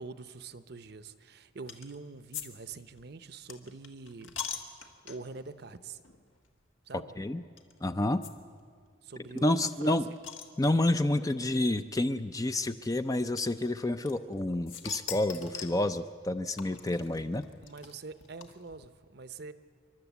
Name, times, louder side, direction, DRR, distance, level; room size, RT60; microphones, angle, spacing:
voice 1, 0.0-4.4 5.0-6.0 6.9-7.1 9.0-10.2 17.6-19.5, right 4 dB, 55° right, 12 dB, 0.7 m, -45 dB
sound 1, 1.7-2.0 2.3-2.5 2.7-5.4 6.0-6.2 6.4-6.5 7.6-7.7 8.2-8.3 8.6-8.7 8.9-9.0 9.4-11.0 11.9-12.0 13.4-14.4 14.7-15.8 16.6-18.9, left 8 dB, 75° left, 1.6 m, -42 dB
voice 2, 7.8-8.2 9.3-10.0 10.6-17.4, left 1 dB, 15° left, 10 dB, 0.4 m, -29 dB
28.0 x 12.0 x 8.2 m, 2.1 s
head